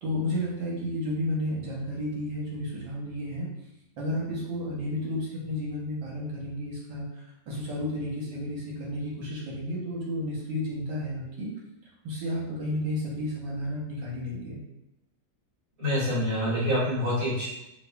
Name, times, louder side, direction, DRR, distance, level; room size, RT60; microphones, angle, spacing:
voice 1, 0.0-3.5 4.0-11.5 12.0-14.6, left 1 dB, 75° right, -4 dB, 1.6 m, -32 dB
voice 2, 15.8-17.5, equal, 50° right, -9 dB, 1.8 m, -26 dB
4.7 x 2.6 x 2.2 m, 0.89 s
omnidirectional pair, 2.0 m